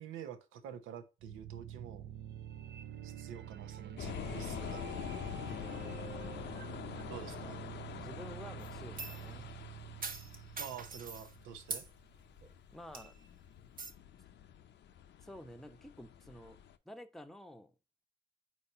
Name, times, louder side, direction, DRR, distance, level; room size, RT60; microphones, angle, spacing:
voice 1, 0.0-2.1 3.0-5.0 7.1-7.6 10.6-11.8, right 8 dB, 90° right, 0.9 m, -48 dB
sound 1, 1.2-12.1, right 9 dB, 60° right, 0.6 m, -47 dB
sound 2, 4.0-16.8, left 10 dB, 65° left, 0.6 m, -46 dB
voice 2, 5.4-6.1 7.9-9.5 12.7-13.2 15.2-16.6 16.9-17.7, left 1 dB, ahead, 0.7 m, -51 dB
sound 3, 8.6-9.3 10.0-11.3 11.7-11.9 12.4-12.5 12.9-13.3 13.8-13.9, right 3 dB, 45° right, 1.1 m, -43 dB
4.8 x 4.2 x 5.5 m
cardioid pair, 90°, 20 cm